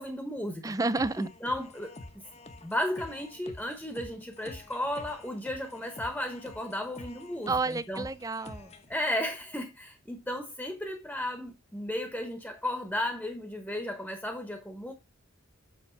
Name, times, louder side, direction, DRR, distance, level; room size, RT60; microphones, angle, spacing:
voice 1, 0.0-0.8 1.2-1.9 2.6-8.0 8.9-14.9, left 1 dB, 5° left, 1.1 m, -34 dB
voice 2, 0.6-1.3 7.5-8.7, right 3 dB, 15° right, 0.4 m, -30 dB
sound 1, 1.0-8.9, left 2 dB, 30° left, 0.9 m, -48 dB
7.1 x 6.5 x 4.6 m
head